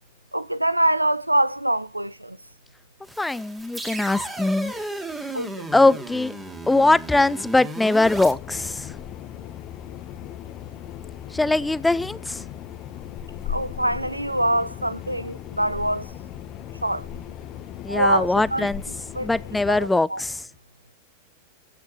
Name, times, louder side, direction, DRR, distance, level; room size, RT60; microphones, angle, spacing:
voice 1, 0.3-2.4 5.3-5.6 13.5-16.1 16.8-17.1 17.9-18.7 19.1-19.3 19.7-19.8 20.1-20.2, right 1 dB, 85° right, 0.5 m, -24 dB
sound 1, 3.0-8.3, right 2 dB, 10° right, 2.5 m, -34 dB
voice 2, 3.2-4.7 5.7-6.3 6.7-9.0 11.3-12.4 17.8-18.8 19.2-20.5, left 2 dB, 5° left, 0.4 m, -21 dB
sound 2, 8.0-19.9, left 9 dB, 35° left, 1.4 m, -37 dB
14.5 x 5.9 x 4.4 m
figure-of-eight pair, 90°, 0 cm